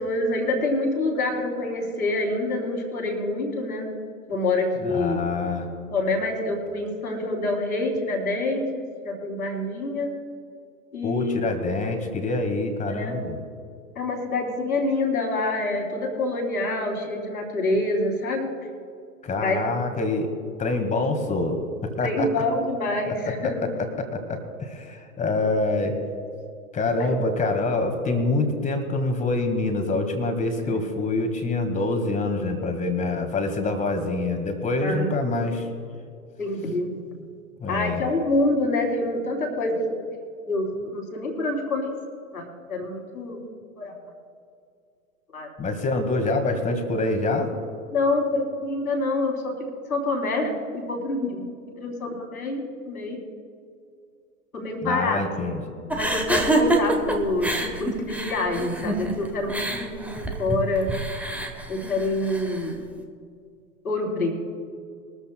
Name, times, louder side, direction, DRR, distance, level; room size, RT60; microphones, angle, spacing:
voice 1, 0.0-3.9 4.3-5.2 5.9-10.1 10.9-11.4 12.9-13.1 14.0-18.5 19.4-19.7 22.0-23.7 25.3-25.5 27.0-27.2 30.6-30.7 34.8-35.1 36.4-36.9 37.7-40.1 40.5-41.9 42.3-43.4 43.8-43.9 45.3-45.5 47.9-49.5 49.9-51.4 51.8-53.2 54.5-55.6 55.9-60.9 61.7-62.8 63.8-64.3, left 2 dB, 80° left, 0 dB, 3.8 m, -26 dB
voice 2, 4.8-5.7 11.0-13.4 19.2-20.3 20.6-21.6 22.0-22.3 23.1-23.5 23.8-25.9 26.7-35.7 37.6-38.0 45.6-47.5 54.8-56.0, left 2 dB, 15° left, 6 dB, 1.9 m, -26 dB
sound 1, 55.9-62.7, right 1 dB, 5° right, 1.1 m, -27 dB
22.5 x 14.0 x 2.3 m, 2.3 s
figure-of-eight pair, 100°, 44 cm